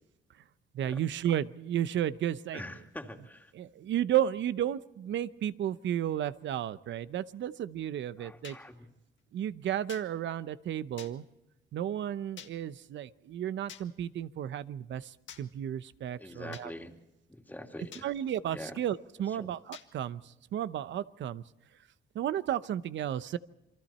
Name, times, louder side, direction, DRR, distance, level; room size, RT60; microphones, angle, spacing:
voice 1, 0.7-2.6 3.5-8.6 9.3-11.2 11.7-16.7 18.0-21.4 22.1-23.4, right 11 dB, 70° right, 14 dB, 0.9 m, -33 dB
voice 2, 2.5-3.5 8.2-8.9 16.2-17.0 17.3-18.1 18.5-18.8 19.3-19.5, left 1 dB, 10° left, 3 dB, 2.6 m, -44 dB
sound 1, 8.4-8.6 9.9-10.1 11.0-11.1 12.4-12.5 13.7-13.9 15.3-15.4 16.5-16.7 17.9-18.1 19.7-19.9, left 9 dB, 70° left, 1.8 m, -47 dB
28.5 x 24.0 x 4.3 m, 0.94 s
cardioid pair, 90°, 20 cm